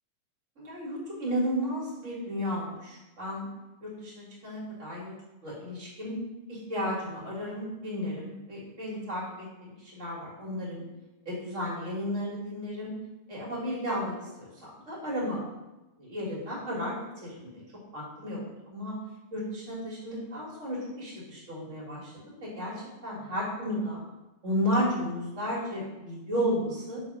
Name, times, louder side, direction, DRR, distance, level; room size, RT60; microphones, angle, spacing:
voice 1, 0.6-3.5 3.8-5.1 5.4-6.2 6.5-10.8 11.3-12.9 13.3-15.4 16.0-16.9 17.2-17.6 17.9-18.4 18.7-18.9 19.3-22.1 22.4-22.7 23.0-24.0 24.4-27.0, equal, 25° right, -6 dB, 2.0 m, -33 dB
6.1 x 3.4 x 5.6 m, 1.0 s
omnidirectional pair, 3.6 m